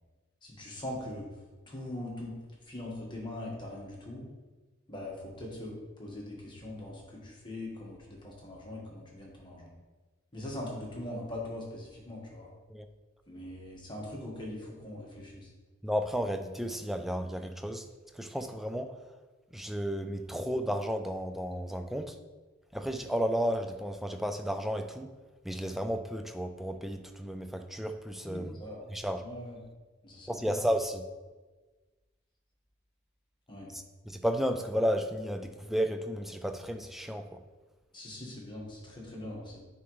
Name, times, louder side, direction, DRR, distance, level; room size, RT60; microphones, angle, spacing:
voice 1, 0.4-1.3 1.7-2.4 2.6-4.2 4.9-9.7 10.3-12.5 13.3-15.5 28.2-28.9 29.2-29.6 30.0-30.5 33.5-33.7 37.9-39.6, left 1 dB, 25° left, -3 dB, 1.4 m, -41 dB
voice 2, 15.8-17.9 18.2-18.9 19.5-22.1 22.7-25.1 25.4-28.6 28.9-29.2 30.3-31.1 33.7-37.4, equal, ahead, 7 dB, 0.3 m, -33 dB
9.5 x 3.6 x 3.1 m, 1.3 s
head